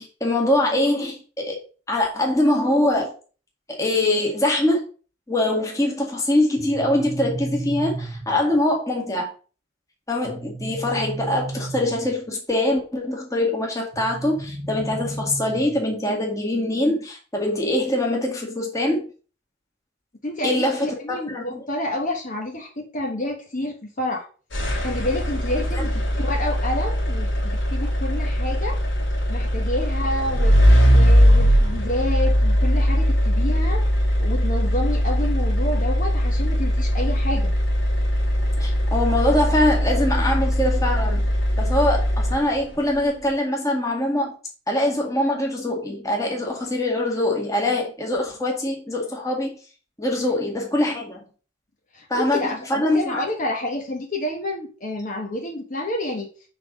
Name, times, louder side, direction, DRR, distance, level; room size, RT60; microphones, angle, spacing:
voice 1, 0.0-1.6 1.9-3.1 3.8-4.8 5.3-9.3 10.1-19.1 20.4-21.6 25.7-25.8 38.6-41.3 41.6-44.3 44.7-49.6 50.0-51.2 52.1-53.2, left 1 dB, 15° left, -1 dB, 1.9 m, -23 dB
sound 1, 6.6-8.6 10.2-12.3 13.9-15.9, right 2 dB, 70° right, 1.1 m, -33 dB
voice 2, 20.2-24.3 24.8-28.8 29.3-30.6 30.9-33.9 34.2-37.5 50.1-50.3 51.9-56.3, left 1 dB, 40° left, 0 dB, 1.3 m, -29 dB
sound 2, 24.5-42.8, equal, 65° left, 2.8 m, -20 dB
5.9 x 4.0 x 6.1 m, 0.38 s
head